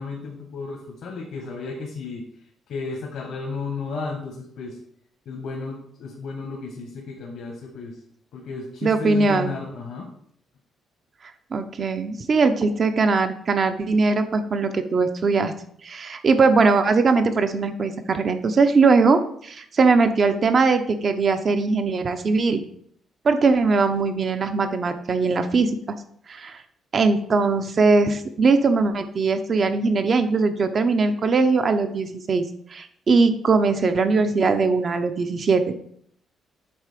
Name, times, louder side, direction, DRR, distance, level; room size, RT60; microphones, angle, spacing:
voice 1, 0.0-2.2 2.7-4.8 5.2-8.0 8.3-10.1, left 4 dB, 75° left, -1 dB, 1.6 m, -33 dB
voice 2, 8.8-9.5 11.5-15.5 15.8-22.6 23.2-25.7 26.3-26.5 26.9-32.4 32.7-35.7, right 4 dB, 45° right, 8 dB, 0.9 m, -20 dB
8.0 x 3.7 x 5.2 m, 0.65 s
cardioid pair, 90°, 0 cm